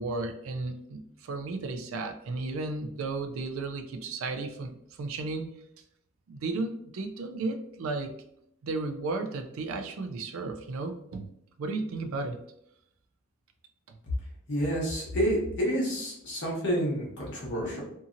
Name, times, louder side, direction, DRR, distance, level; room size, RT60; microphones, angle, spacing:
voice 1, 0.0-5.5 6.3-8.1 8.6-11.3 11.6-12.4, right 3 dB, 70° right, 7 dB, 0.4 m, -34 dB
voice 2, 14.5-17.8, equal, 55° left, -4 dB, 1.0 m, -29 dB
2.7 x 2.7 x 2.5 m, 0.74 s
head